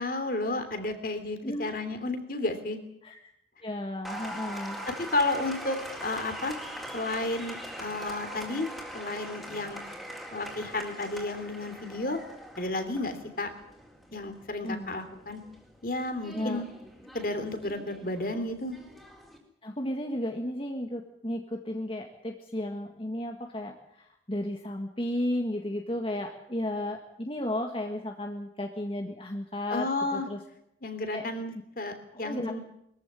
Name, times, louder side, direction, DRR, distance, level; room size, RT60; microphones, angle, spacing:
voice 1, 0.0-2.8 5.1-6.6 6.9-8.7 8.9-9.8 10.3-12.2 12.6-13.5 14.1-15.4 15.8-16.6 17.1-18.8 29.7-30.3 30.8-32.6, left 2 dB, 50° left, 8 dB, 3.1 m, -32 dB
voice 2, 3.6-4.8 14.6-14.9 16.3-16.6 19.6-30.4 31.1-31.3 32.1-32.6, left 1 dB, 30° left, 3 dB, 1.7 m, -34 dB
Applause, 4.0-19.4, equal, ahead, 4.0 m, -42 dB
22.5 x 14.5 x 9.9 m, 0.78 s
head